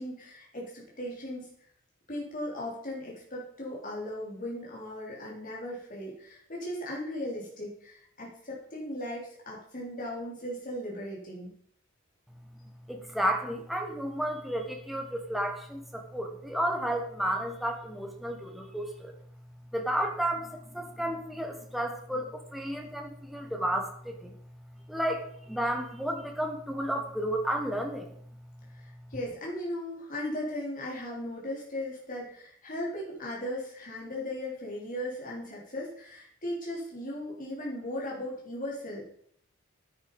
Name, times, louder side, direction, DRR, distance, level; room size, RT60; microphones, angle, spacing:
voice 1, 0.0-1.5 2.1-11.5 28.8-39.1, left 1 dB, 40° left, -4 dB, 4.4 m, -37 dB
voice 2, 12.9-19.1 19.7-24.3 24.9-28.1, right 1 dB, ahead, 3 dB, 1.4 m, -32 dB
10.0 x 9.4 x 5.4 m, 0.65 s
head